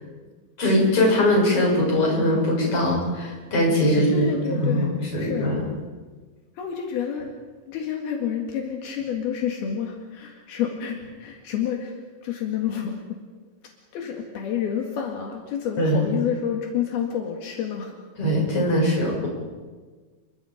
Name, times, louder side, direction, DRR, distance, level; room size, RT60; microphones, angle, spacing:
voice 1, 0.6-5.7 15.8-16.0 18.2-19.3, left 1 dB, 35° left, -2 dB, 7.5 m, -21 dB
voice 2, 3.9-5.5 6.6-7.3 7.7-12.0 12.2-13.2 13.9-17.9, left 8 dB, 80° left, 1 dB, 3.9 m, -29 dB
29.0 x 23.5 x 5.2 m, 1.4 s
omnidirectional pair, 4.4 m